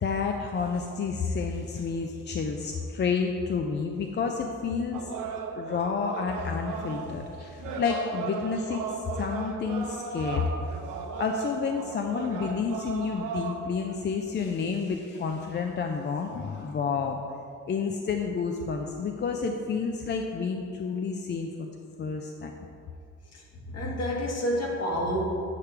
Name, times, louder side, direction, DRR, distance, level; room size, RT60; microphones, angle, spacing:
voice 1, 0.0-5.1 5.5-10.4 11.2-17.2 17.7-21.7 22.0-22.5, left 5 dB, 35° left, 3 dB, 0.5 m, -30 dB
sound 1, 4.9-13.6, right 5 dB, 80° right, 0.8 m, -36 dB
voice 2, 23.3-25.2, equal, 55° left, -2 dB, 1.6 m, -30 dB
8.5 x 3.3 x 5.8 m, 2.5 s
cardioid pair, 90°, 30 cm